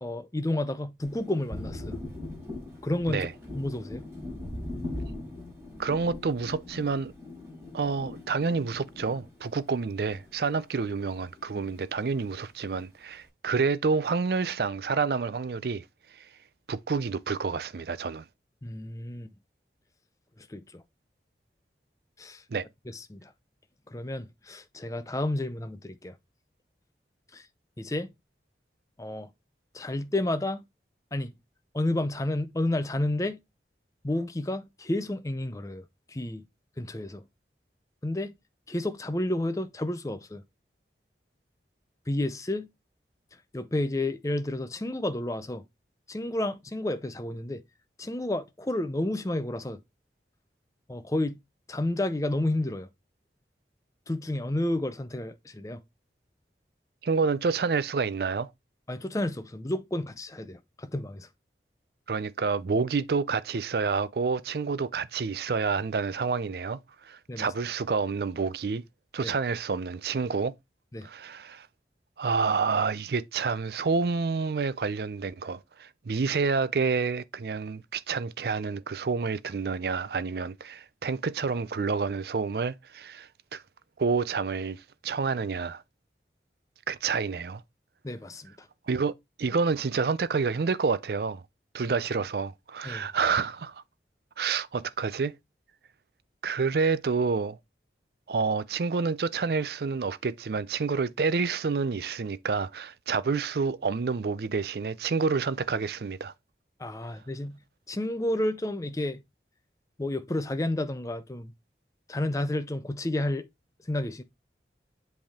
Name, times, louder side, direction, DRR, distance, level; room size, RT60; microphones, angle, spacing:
voice 1, 0.0-2.0 2.8-3.3 3.5-4.0 18.6-19.3 20.4-20.8 22.2-22.4 22.9-23.3 23.9-26.1 27.3-27.5 27.8-28.1 29.0-29.3 29.7-30.6 31.1-31.3 31.7-33.4 34.0-36.4 36.8-37.2 38.0-38.3 38.7-40.4 42.1-42.7 43.5-45.6 46.1-47.6 48.0-49.8 50.9-51.4 51.7-52.9 54.1-55.8 58.9-61.3 67.3-67.5 69.2-69.3 70.9-71.1 88.0-88.5 92.8-93.1 106.8-107.6 107.9-109.2 110.0-111.5 112.1-113.5 113.9-114.2, left 1 dB, 20° left, 0.5 m, -31 dB
Thunder, 1.0-10.8 11.1-12.3, left 1 dB, 10° right, 4.8 m, -41 dB
voice 2, 5.8-7.1 7.7-15.8 16.1-16.3 16.7-18.2 22.5-22.7 57.0-58.5 62.1-68.8 69.1-70.5 71.0-71.7 72.2-83.6 84.0-85.8 86.9-87.6 88.9-89.1 89.4-91.4 91.7-93.8 94.4-95.3 96.4-97.6 98.3-106.3, right 5 dB, 65° right, 0.4 m, -28 dB
7.8 x 3.4 x 3.6 m
head